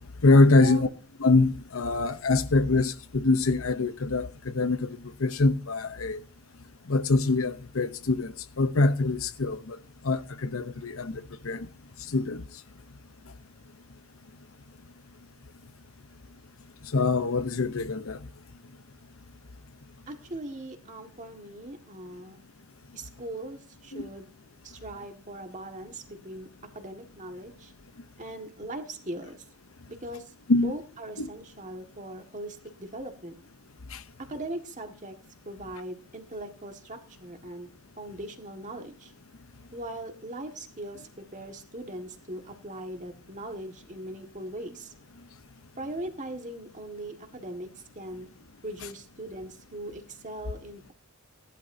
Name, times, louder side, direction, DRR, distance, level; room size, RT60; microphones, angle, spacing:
voice 1, 0.2-0.9 1.2-6.2 6.9-9.8 10.0-11.7 12.1-12.4 16.9-18.2 23.9-24.1 30.5-30.7 31.2-31.3 33.9-34.0, left 3 dB, 70° left, 0.8 m, -24 dB
voice 2, 20.1-22.4 22.9-24.3 24.6-26.5 26.7-27.7 28.2-29.4 29.9-33.3 34.2-35.2 35.5-39.1 39.7-44.9 45.8-47.7 48.0-48.3 48.6-50.9, right 1 dB, 35° right, 1.7 m, -40 dB
17.0 x 11.5 x 2.7 m
head